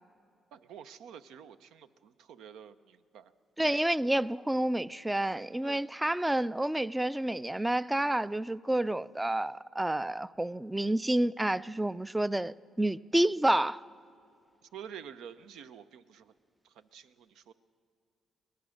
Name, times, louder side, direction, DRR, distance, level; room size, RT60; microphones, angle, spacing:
voice 1, 0.5-3.3 5.6-5.9 14.7-16.3 16.6-17.5, right 8 dB, 85° right, 0.7 m, -49 dB
voice 2, 3.6-13.8, right 1 dB, 10° right, 0.4 m, -29 dB
23.5 x 18.0 x 6.4 m
cardioid pair, 90°, 0 cm